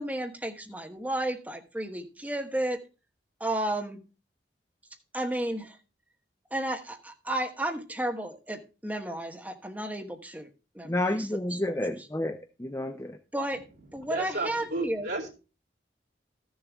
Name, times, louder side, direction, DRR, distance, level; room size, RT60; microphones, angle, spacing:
voice 1, 0.0-2.8 3.4-4.0 5.1-5.8 6.5-10.5 10.7-11.6 13.3-13.6 13.9-15.1, right 1 dB, 10° right, 3 dB, 1.2 m, -32 dB
voice 2, 10.8-13.2, left 1 dB, 15° left, 6 dB, 0.6 m, -30 dB
voice 3, 14.0-15.3, right 2 dB, 75° right, -2 dB, 2.8 m, -33 dB
13.5 x 7.2 x 3.5 m, 0.32 s
head